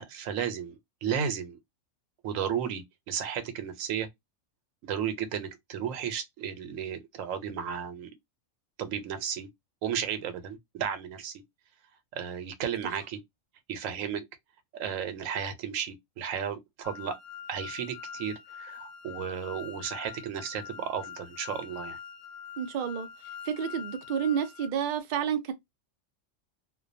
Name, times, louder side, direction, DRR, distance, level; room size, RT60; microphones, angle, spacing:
voice 1, 0.0-1.6 2.2-4.1 4.8-8.1 8.8-9.5 9.8-11.4 12.1-13.2 13.7-14.2 14.7-17.1 17.5-22.0, right 8 dB, 85° right, 1.0 m, -34 dB
sound 1, 16.8-24.7, left 8 dB, 70° left, 0.8 m, -44 dB
voice 2, 22.6-23.1 23.5-25.5, right 8 dB, 60° right, 0.5 m, -30 dB
2.3 x 2.2 x 2.5 m
omnidirectional pair, 1.3 m